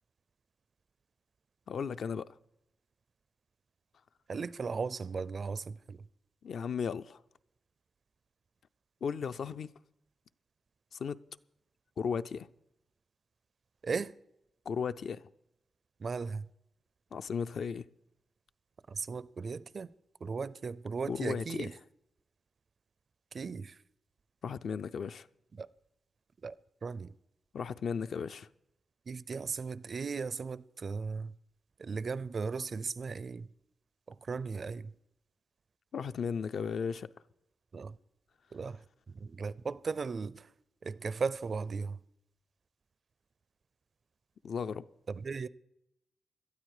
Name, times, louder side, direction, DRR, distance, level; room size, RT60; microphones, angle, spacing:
voice 1, 1.7-2.3 6.4-7.2 9.0-9.7 10.9-11.2 12.0-12.5 14.7-15.2 17.1-17.9 21.1-21.7 24.4-25.3 27.5-28.5 35.9-37.1 44.4-44.9, left 6 dB, 60° left, 0.5 m, -35 dB
voice 2, 4.3-6.0 13.8-14.1 16.0-16.5 18.9-19.9 20.2-21.7 23.3-23.8 25.5-25.7 26.4-26.5 26.8-27.1 29.1-31.3 31.8-33.5 34.1-34.9 37.7-37.9 38.5-38.8 39.1-40.5 40.8-42.0 45.1-45.5, right 5 dB, 35° right, 0.4 m, -37 dB
18.0 x 12.5 x 4.9 m
wide cardioid pair, 180°, 0 cm